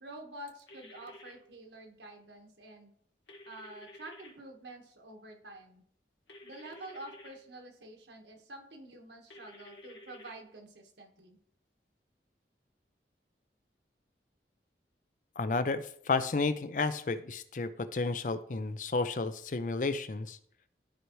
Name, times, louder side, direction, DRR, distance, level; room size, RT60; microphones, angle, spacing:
voice 1, 0.0-2.9 3.5-5.8 6.4-11.4, right 1 dB, 80° right, 2 dB, 1.5 m, -48 dB
sound 1, 0.7-1.3 3.3-4.3 6.3-7.3 9.3-10.3, left 1 dB, 80° left, 1.9 m, -51 dB
voice 2, 15.4-20.4, left 3 dB, 45° left, 12 dB, 0.5 m, -32 dB
12.5 x 4.6 x 3.1 m, 0.62 s
head